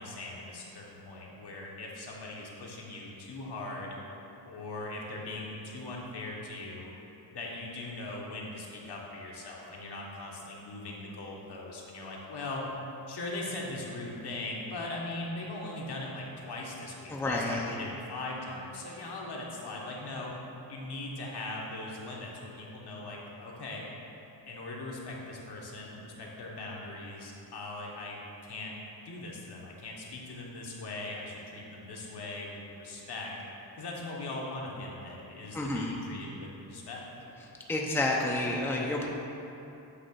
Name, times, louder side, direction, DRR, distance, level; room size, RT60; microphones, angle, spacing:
voice 1, 0.0-4.0 4.4-6.9 7.3-12.7 13.1-20.3 20.7-23.8 24.5-28.7 29.0-33.3 33.8-37.1, left 2 dB, 60° left, -2 dB, 1.3 m, -40 dB
voice 2, 17.1-17.7 35.5-35.9 37.7-39.1, left 2 dB, 5° left, -1 dB, 0.6 m, -30 dB
8.1 x 2.9 x 5.7 m, 2.9 s
cardioid pair, 80°, 45 cm